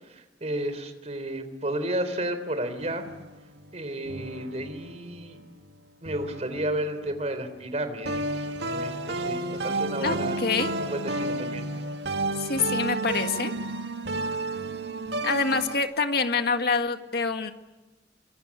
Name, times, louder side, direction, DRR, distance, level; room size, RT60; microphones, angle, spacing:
voice 1, 0.1-3.1 3.7-5.4 6.0-10.4 10.8-11.6, right 1 dB, 40° right, 9 dB, 3.6 m, -32 dB
sound 1, 2.8-5.4 6.1-7.6 8.1-15.8, right 2 dB, 75° right, 1.7 m, -32 dB
voice 2, 10.0-10.7 12.4-13.5 15.2-17.5, left 4 dB, 60° left, 7 dB, 1.9 m, -26 dB
25.5 x 23.0 x 9.7 m, 1.1 s
head